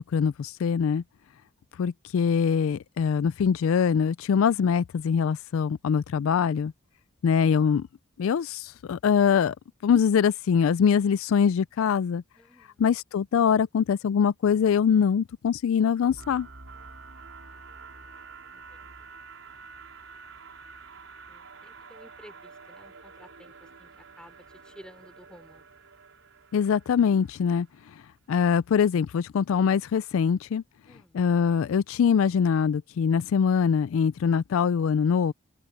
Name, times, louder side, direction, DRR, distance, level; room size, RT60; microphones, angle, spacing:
voice 1, 0.1-1.0 1.8-6.7 7.2-7.9 8.2-9.5 9.8-12.2 12.8-16.5 26.5-27.7 28.3-30.6 31.1-35.3, left 7 dB, 75° left, 0.3 m, -23 dB
voice 2, 12.3-12.9 16.7-17.8 18.5-19.1 20.4-20.6 20.9-23.9 24.2-25.6 30.9-31.2, equal, 5° left, 3.1 m, -54 dB
sound 1, 16.1-27.9, right 4 dB, 70° right, 5.0 m, -48 dB
open air
head